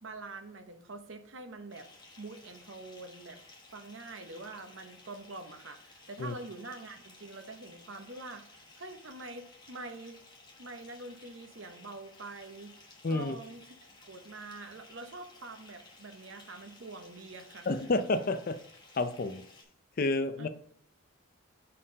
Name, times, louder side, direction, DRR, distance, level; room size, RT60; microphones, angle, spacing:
voice 1, 0.0-1.9 2.2-3.4 3.7-10.2 10.6-13.6 14.0-17.7 20.4-20.5, right 2 dB, 65° right, 0.8 m, -45 dB
Bathtub (filling or washing) / Fill (with liquid), 1.7-19.6, left 3 dB, 20° left, 1.1 m, -56 dB
voice 2, 13.0-13.4 17.7-18.6 19.0-19.4 20.0-20.5, left 2 dB, 40° left, 0.4 m, -30 dB
5.6 x 4.3 x 5.1 m
head